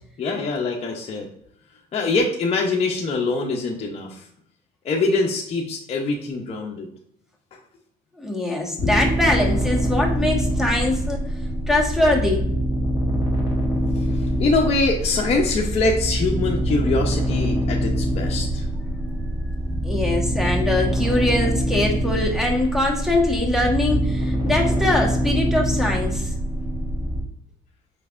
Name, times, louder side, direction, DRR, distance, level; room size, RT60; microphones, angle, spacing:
voice 1, 0.2-1.3 1.9-4.3 4.8-6.9 7.5-7.6 8.8-9.1 13.9-18.7, left 3 dB, 40° left, -1 dB, 0.6 m, -24 dB
voice 2, 8.2-11.2 11.7-12.5 19.8-26.3, left 1 dB, ahead, 0 dB, 1.0 m, -22 dB
sound 1, 8.8-27.2, right 1 dB, 20° right, 1.2 m, -24 dB
5.0 x 3.2 x 2.4 m, 0.72 s
cardioid pair, 110°, 17 cm